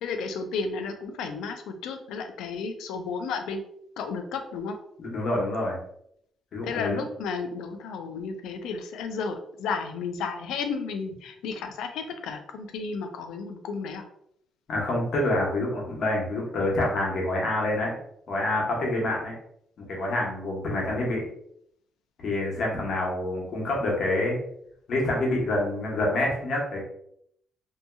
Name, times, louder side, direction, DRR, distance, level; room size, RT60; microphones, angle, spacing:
voice 1, 0.0-3.6 4.0-4.8 6.6-14.0, left 5 dB, 90° left, 6 dB, 0.4 m, -33 dB
voice 2, 5.0-5.8 6.5-7.0 14.7-18.0 18.3-19.3 19.9-21.3 22.2-24.4 24.9-26.8, left 1 dB, 60° left, -3 dB, 1.0 m, -27 dB
2.7 x 2.7 x 2.2 m, 0.71 s
cardioid pair, 90°, 0 cm